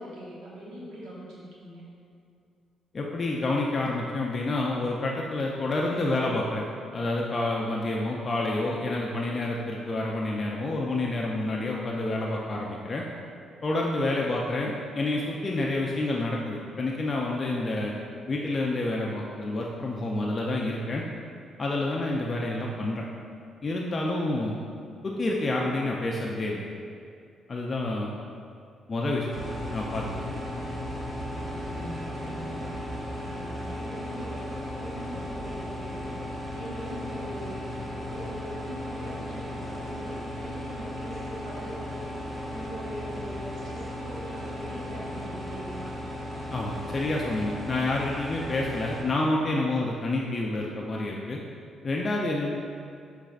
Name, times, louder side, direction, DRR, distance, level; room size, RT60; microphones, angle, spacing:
voice 1, 0.0-1.9 31.5-45.9, equal, 80° right, -7 dB, 1.2 m, -42 dB
voice 2, 2.9-6.7 6.9-13.0 13.6-17.9 18.3-21.0 21.6-23.0 23.6-24.5 25.0-26.7 27.5-28.1 28.9-29.3 29.7-30.3 46.5-51.4 51.8-52.5, left 2 dB, 35° left, -2 dB, 0.4 m, -28 dB
sound 1, 29.3-49.0, left 1 dB, 30° right, 1.3 m, -36 dB
6.3 x 3.2 x 2.4 m, 2.4 s
cardioid pair, 90°, 0 cm